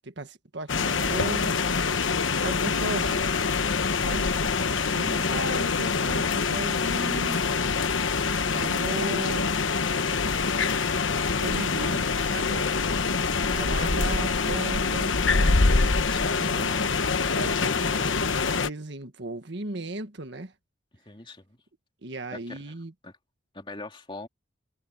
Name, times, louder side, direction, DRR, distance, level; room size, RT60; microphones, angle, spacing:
voice 1, 0.0-1.5 2.4-3.3 4.0-4.4 4.9-7.4 8.5-9.6 11.4-12.8 13.5-15.6 16.4-17.0 17.3-18.2 18.5-20.5 22.0-22.9, right 2 dB, 60° right, 1.6 m, -36 dB
sound 1, 0.7-18.7, left 4 dB, 75° left, 1.1 m, -25 dB
voice 2, 13.2-13.6 16.1-16.5 21.0-21.6 22.3-22.7 23.0-23.1 23.5-24.3, left 2 dB, 25° left, 2.9 m, -42 dB
head